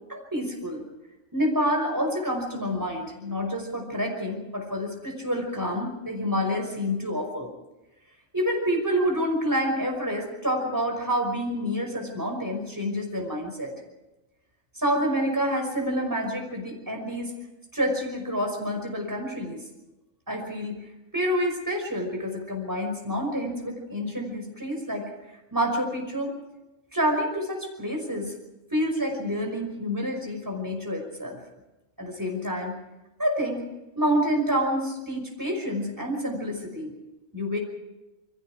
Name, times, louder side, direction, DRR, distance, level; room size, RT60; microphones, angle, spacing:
voice 1, 0.1-0.8 1.3-7.5 8.3-13.7 14.7-17.3 17.7-19.6 20.3-20.8 21.1-25.1 25.5-26.3 26.9-28.3 28.7-31.4 32.0-32.8 33.2-33.6 34.0-37.0 37.3-37.6, equal, 15° right, 1 dB, 5.5 m, -28 dB
29.0 x 23.0 x 4.8 m, 1.0 s
omnidirectional pair, 1.4 m